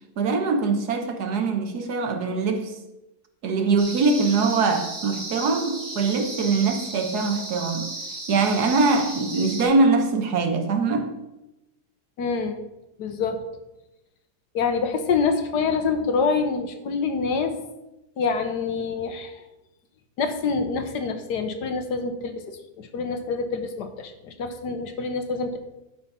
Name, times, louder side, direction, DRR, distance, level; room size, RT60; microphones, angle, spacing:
voice 1, 0.2-2.8 3.4-7.9 8.3-11.2, right 4 dB, 65° right, 1.4 m, -23 dB
sound 1, 3.8-9.6, right 2 dB, 40° right, 2.4 m, -35 dB
voice 2, 12.2-12.6 13.0-13.4 14.5-17.6 18.2-19.3 20.2-22.3 22.8-25.6, left 5 dB, 70° left, 1.5 m, -26 dB
12.0 x 4.8 x 5.6 m
omnidirectional pair, 1.9 m